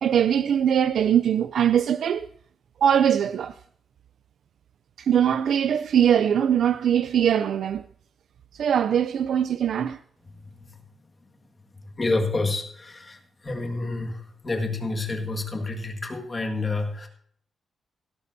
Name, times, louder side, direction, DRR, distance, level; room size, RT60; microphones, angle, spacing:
voice 1, 0.0-2.3 2.8-3.5 5.0-7.8 8.5-10.0, right 9 dB, 70° right, 0.4 m, -21 dB
voice 2, 12.0-13.2 13.4-17.1, left 3 dB, 25° left, 1.7 m, -28 dB
17.0 x 12.5 x 2.7 m
wide cardioid pair, 140°, 0 cm